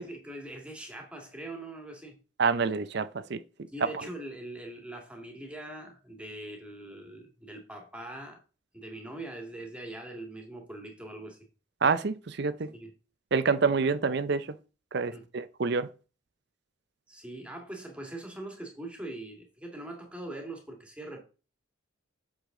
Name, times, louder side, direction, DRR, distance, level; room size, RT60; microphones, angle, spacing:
voice 1, 0.0-2.2 3.7-8.4 8.7-11.4 12.7-12.9 15.1-15.2 17.1-21.2, right 1 dB, 5° right, 1.9 m, -42 dB
voice 2, 2.4-3.4 11.8-12.7 13.3-14.5 14.9-15.9, right 5 dB, 55° right, 0.6 m, -27 dB
8.1 x 6.6 x 3.8 m
head